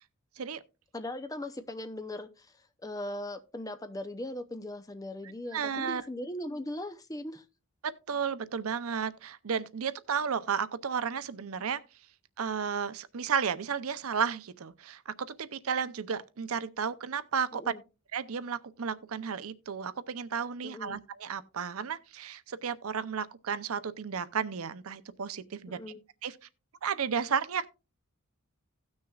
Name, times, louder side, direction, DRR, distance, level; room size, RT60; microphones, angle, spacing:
voice 1, 0.9-2.5 2.8-7.4 17.5-17.8 20.6-21.0 25.7-26.0, left 1 dB, 15° left, 0.6 m, -39 dB
voice 2, 5.5-6.0 7.8-11.8 12.4-17.7 18.1-25.8 26.2-26.3 26.8-27.7, right 6 dB, 75° right, 0.6 m, -33 dB
17.0 x 6.3 x 2.4 m
head